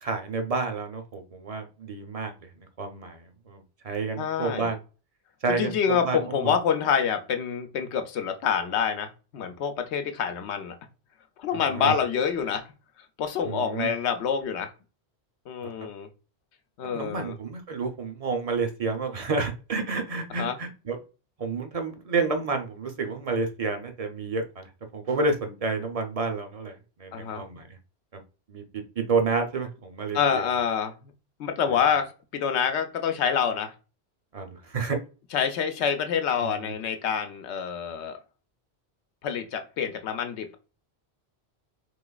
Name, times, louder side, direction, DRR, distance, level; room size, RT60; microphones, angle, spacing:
voice 1, 0.0-2.3 2.8-4.8 5.4-6.5 11.5-11.9 13.4-13.9 16.9-21.0 21.4-27.8 28.1-28.2 28.5-28.6 29.0-30.4 31.7-31.8 34.3-35.0 36.4-36.7, right 4 dB, 40° right, 6 dB, 0.6 m, -30 dB
voice 2, 4.2-4.7 5.5-10.8 11.4-12.7 13.2-14.7 15.5-16.1 16.8-17.3 20.4-20.6 27.1-27.4 30.1-31.1 31.4-33.7 35.3-38.2 39.2-40.6, left 7 dB, 90° left, 8 dB, 0.9 m, -27 dB
3.9 x 2.9 x 2.3 m, 0.33 s
omnidirectional pair, 1.1 m